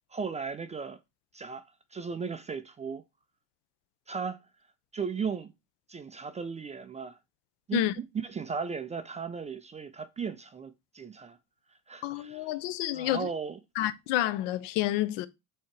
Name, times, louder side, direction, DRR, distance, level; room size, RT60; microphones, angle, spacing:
voice 1, 0.1-1.0 1.3-1.6 1.9-3.0 4.1-4.4 4.9-5.5 5.9-7.2 7.7-7.8 8.1-11.4 11.9-12.5 12.9-13.6, right 5 dB, 20° right, 0.3 m, -36 dB
voice 2, 12.0-13.3 13.8-15.3, left 14 dB, 80° left, 0.8 m, -29 dB
7.3 x 2.8 x 4.5 m
cardioid pair, 135°, 41 cm